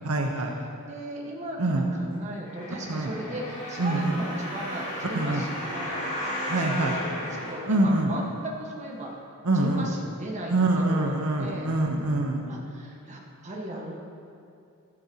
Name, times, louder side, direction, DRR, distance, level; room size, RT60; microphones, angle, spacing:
voice 1, 0.0-0.5 1.6-1.9 2.9-3.1 3.8-4.2 5.1-5.4 6.5-7.0 7.7-8.1 9.4-9.9 10.5-12.4, right 2 dB, 85° right, 1 dB, 1.1 m, -25 dB
voice 2, 0.8-9.1 9.5-11.7 12.5-13.9, right 1 dB, 30° right, -2 dB, 1.6 m, -37 dB
sound 1, 2.5-8.4 9.0-9.1, left 1 dB, 30° left, 2.8 m, -35 dB
15.0 x 11.0 x 3.0 m, 2.5 s
head